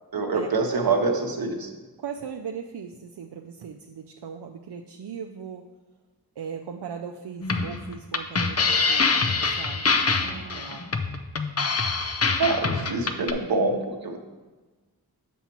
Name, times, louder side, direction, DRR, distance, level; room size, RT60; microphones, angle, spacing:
voice 1, 0.1-1.7 10.2-10.9 12.4-14.2, right 3 dB, 65° right, 4 dB, 0.9 m, -26 dB
voice 2, 2.0-5.6 6.4-9.2 9.5-10.1, right 7 dB, 85° right, 2 dB, 0.5 m, -38 dB
sound 1, 7.4-13.3, left 4 dB, 40° left, 0.5 m, -24 dB
7.1 x 7.0 x 2.9 m, 1.3 s
wide cardioid pair, 70°, 39 cm